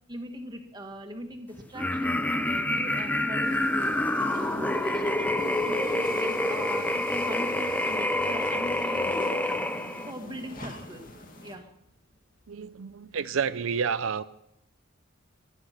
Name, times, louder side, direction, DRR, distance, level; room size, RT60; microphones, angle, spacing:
voice 1, 0.1-4.0 4.3-9.5 10.0-11.0 11.4-11.7, equal, 20° right, 4 dB, 1.8 m, -40 dB
sound 1, 1.8-10.1, left 1 dB, 10° left, 0.6 m, -27 dB
sound 2, 3.4-11.6, left 1 dB, 40° left, 2.2 m, -43 dB
sound 3, 5.7-6.5 7.2-7.6 8.1-8.2 8.8-9.9 10.2-10.3 10.6-11.0 11.4-11.8 12.4-13.1 13.4-13.5, equal, 65° left, 8.0 m, -43 dB
voice 2, 12.5-14.2, right 6 dB, 75° right, 12 dB, 0.5 m, -30 dB
23.0 x 10.0 x 5.9 m, 0.79 s
head